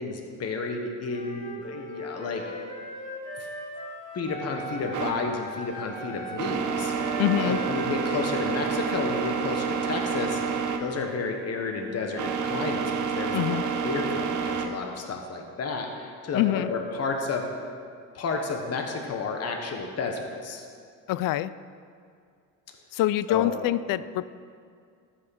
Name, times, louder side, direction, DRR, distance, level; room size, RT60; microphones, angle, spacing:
voice 1, 0.0-2.4 3.3-3.5 4.1-6.9 7.4-10.4 10.8-17.4 18.1-20.7 23.3-23.5, left 4 dB, 45° left, 3 dB, 1.3 m, -31 dB
Wind instrument woodwind instrument, 1.1-5.1 5.4-9.6, right 1 dB, 20° left, 2.1 m, -39 dB
sound 1, 4.9-14.7, right 6 dB, 55° right, 1.1 m, -29 dB
voice 2, 7.2-7.6 13.3-13.6 16.3-16.7 21.1-21.5 22.9-24.2, left 14 dB, 70° left, 16 dB, 0.5 m, -25 dB
13.5 x 6.5 x 6.4 m, 2.2 s
cardioid pair, 130°, 35 cm